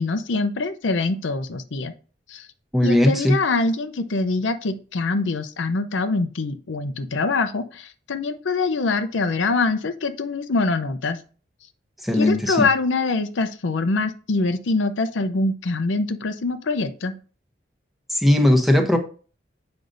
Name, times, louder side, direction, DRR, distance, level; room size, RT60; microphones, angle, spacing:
voice 1, 0.0-1.9 2.3-2.5 2.8-11.2 12.2-17.1, left 3 dB, 85° left, 9 dB, 0.6 m, -24 dB
voice 2, 2.7-3.4 12.0-12.7 18.1-19.0, left 1 dB, ahead, 4 dB, 0.8 m, -18 dB
7.7 x 5.2 x 2.6 m, 0.39 s
head